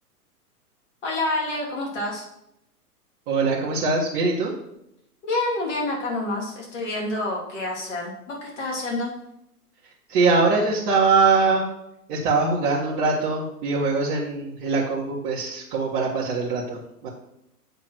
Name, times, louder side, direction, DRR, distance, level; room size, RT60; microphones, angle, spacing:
voice 1, 1.0-2.2 5.2-9.1, left 2 dB, 50° left, -1 dB, 2.9 m, -28 dB
voice 2, 3.3-4.5 10.1-11.6 12.1-17.1, right 4 dB, 30° right, -7 dB, 1.7 m, -22 dB
8.2 x 3.8 x 6.2 m, 0.82 s
figure-of-eight pair, 115°, 47 cm